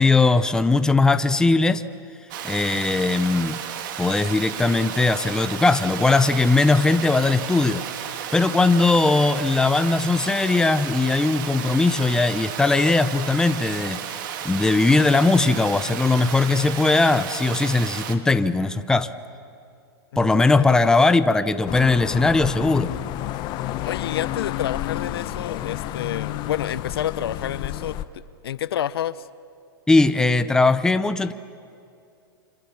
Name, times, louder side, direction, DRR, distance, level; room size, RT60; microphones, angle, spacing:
voice 1, 0.0-1.8 2.4-3.6 4.0-7.8 8.3-19.1 20.2-22.9 29.9-31.3, left 3 dB, 5° left, 12 dB, 0.7 m, -19 dB
Water, 2.3-18.2, right 9 dB, 55° right, 2.1 m, -33 dB
voice 2, 20.1-20.9 23.8-29.3, left 10 dB, 80° left, 17 dB, 0.8 m, -29 dB
sound 1, 21.7-28.0, left 13 dB, 35° left, 1.0 m, -30 dB
26.0 x 26.0 x 7.2 m, 2.4 s
hypercardioid pair, 135°, 13 cm